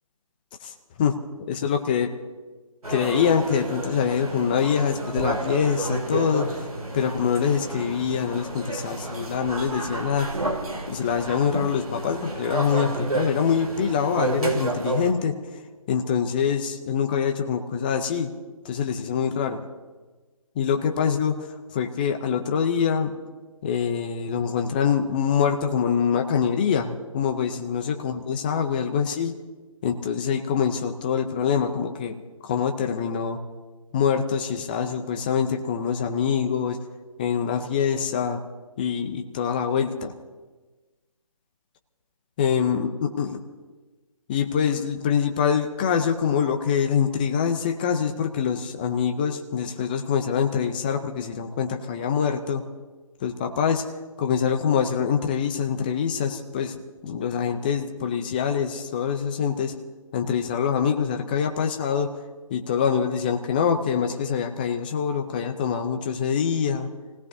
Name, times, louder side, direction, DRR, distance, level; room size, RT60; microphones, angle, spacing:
voice 1, 1.5-2.1 2.9-6.6 6.9-10.3 10.9-15.3 15.9-18.3 18.6-19.6 20.6-23.1 23.6-29.3 29.8-32.2 32.4-33.4 33.9-36.8 37.2-38.4 38.8-40.1 42.4-43.4 44.3-52.6 53.2-53.8 54.2-56.8 57.0-59.8 60.1-62.1 62.5-66.9, left 7 dB, 15° left, 5 dB, 0.6 m, -24 dB
sound 1, 2.8-15.1, right 2 dB, 80° right, 2.3 m, -30 dB
28.0 x 17.5 x 2.7 m, 1.3 s
figure-of-eight pair, 160°, 19 cm